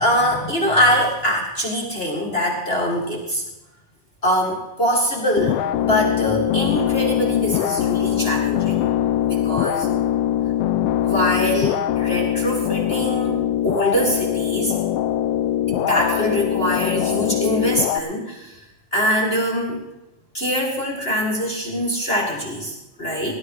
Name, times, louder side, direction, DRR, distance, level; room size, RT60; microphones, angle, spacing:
voice 1, 0.0-3.4 4.2-8.9 9.2-9.9 11.0-14.8 15.7-19.8 20.3-23.3, equal, 25° left, -1 dB, 1.7 m, -23 dB
sound 1, 5.4-18.0, left 11 dB, 90° left, 2.3 m, -22 dB
18.5 x 11.5 x 4.7 m, 0.94 s
omnidirectional pair, 3.8 m